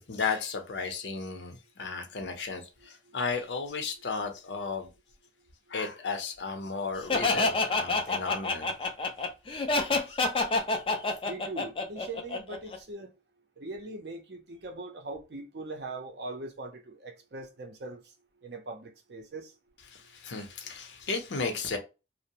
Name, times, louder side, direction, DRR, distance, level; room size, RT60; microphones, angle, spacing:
voice 1, 0.0-4.9 5.7-8.7 10.1-10.2 19.9-21.8, left 4 dB, 80° left, 0.6 m, -34 dB
Laughter, 7.1-12.8, left 3 dB, 30° left, 0.4 m, -27 dB
voice 2, 11.3-13.1 13.6-18.0 18.4-19.5, right 2 dB, 65° right, 0.6 m, -41 dB
2.6 x 2.0 x 2.8 m
head